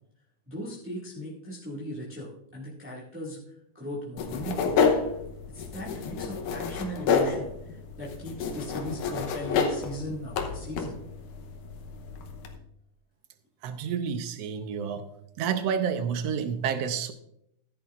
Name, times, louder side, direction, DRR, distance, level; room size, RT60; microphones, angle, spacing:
voice 1, 0.5-4.8 5.5-11.0, equal, 5° right, -7 dB, 1.2 m, -38 dB
sound 1, 4.2-12.6, left 5 dB, 85° left, 2.5 m, -29 dB
voice 2, 13.6-15.0 15.4-17.1, right 7 dB, 75° right, 9 dB, 1.5 m, -29 dB
14.5 x 10.5 x 2.5 m, 0.75 s
omnidirectional pair, 3.6 m